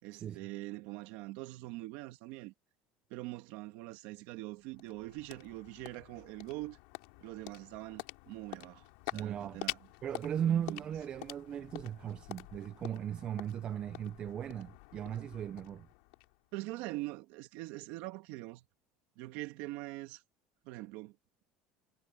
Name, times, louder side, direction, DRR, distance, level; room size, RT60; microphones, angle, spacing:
voice 1, 0.0-2.5 3.1-6.8 7.2-9.8 10.4-10.8 16.5-18.6 19.2-20.2 20.6-21.2, right 19 dB, 65° right, 2.3 m, -43 dB
sound 1, 4.3-16.7, left 26 dB, 80° left, 3.5 m, -47 dB
voice 2, 9.1-9.6 10.0-15.9, right 9 dB, 30° right, 0.4 m, -37 dB
cardioid pair, 160°, 3 cm